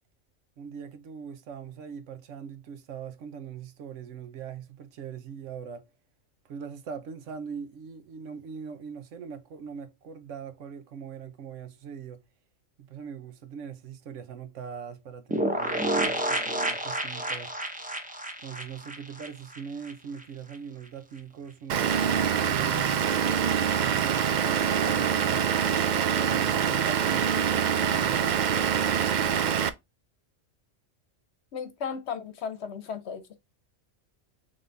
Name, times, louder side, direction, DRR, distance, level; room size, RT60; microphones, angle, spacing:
voice 1, 0.6-5.9 6.5-12.2 12.8-17.5 18.4-22.9 23.7-25.6 26.1-27.4 27.7-29.7, right 7 dB, 80° right, 1.1 m, -41 dB
sound 1, 15.3-19.9 20.2-20.3 20.5-20.6, right 1 dB, 10° right, 0.6 m, -30 dB
Vehicle / Engine, 21.7-29.7, right 8 dB, 65° right, 0.4 m, -25 dB
voice 2, 31.5-33.4, left 6 dB, 65° left, 1.0 m, -35 dB
3.9 x 3.7 x 3.3 m
omnidirectional pair, 1.3 m